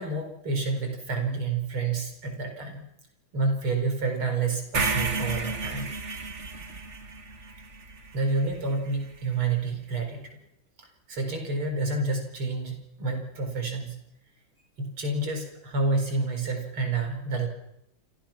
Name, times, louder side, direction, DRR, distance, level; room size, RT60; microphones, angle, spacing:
voice 1, 0.0-2.9 3.3-5.9 8.1-10.3 10.8-14.1 14.8-17.5, right 3 dB, 90° right, 4 dB, 5.6 m, -29 dB
sound 1, 4.7-8.9, right 3 dB, 35° right, 2.2 m, -32 dB
28.5 x 27.5 x 6.0 m, 0.84 s
omnidirectional pair, 2.2 m